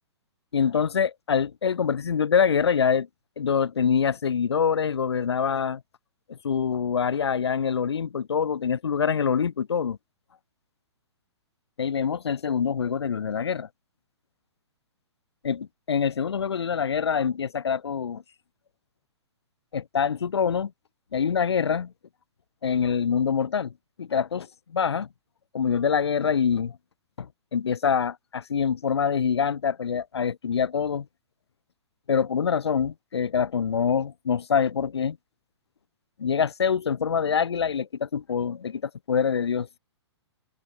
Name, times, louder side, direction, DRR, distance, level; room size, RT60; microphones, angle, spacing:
voice 1, 0.5-3.1 3.4-5.8 6.3-10.0 11.8-13.7 15.4-18.2 19.7-20.7 21.1-21.9 22.6-23.7 24.0-25.1 25.5-26.8 27.2-27.3 27.5-31.1 32.1-35.2 36.2-39.7, left 7 dB, 65° left, 2.2 m, -25 dB
figure-of-eight pair, 120°, 15 cm